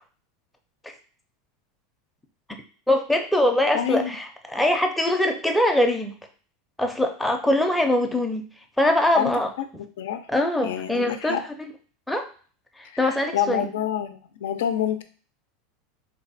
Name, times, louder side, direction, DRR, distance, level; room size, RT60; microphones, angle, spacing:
voice 1, 2.9-6.1 6.8-8.4 8.8-9.5 10.3-11.7 12.1-12.3 12.8-13.7, left 1 dB, 5° left, 3 dB, 0.5 m, -23 dB
voice 2, 3.7-4.2 9.1-9.3 10.0-10.3 10.6-11.4 12.8-15.0, left 10 dB, 90° left, 9 dB, 0.5 m, -27 dB
3.4 x 2.1 x 4.0 m, 0.41 s
supercardioid pair, 145°, 0 cm